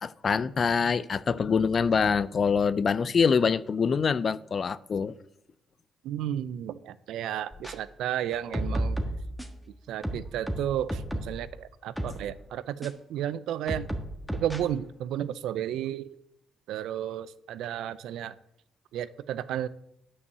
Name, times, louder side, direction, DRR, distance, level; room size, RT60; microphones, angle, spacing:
voice 1, 0.0-5.1, left 5 dB, 45° left, 0.4 m, -25 dB
voice 2, 6.0-9.0 9.9-13.9 14.3-16.1 16.7-18.3 18.9-19.7, right 11 dB, 85° right, 0.4 m, -33 dB
sound 1, 7.5-7.7 8.3-9.6 10.0-11.4 12.0-12.2 12.8-12.9 13.7-14.6, right 1 dB, ahead, 1.4 m, -32 dB
9.6 x 5.6 x 6.7 m
cardioid pair, 90°, 0 cm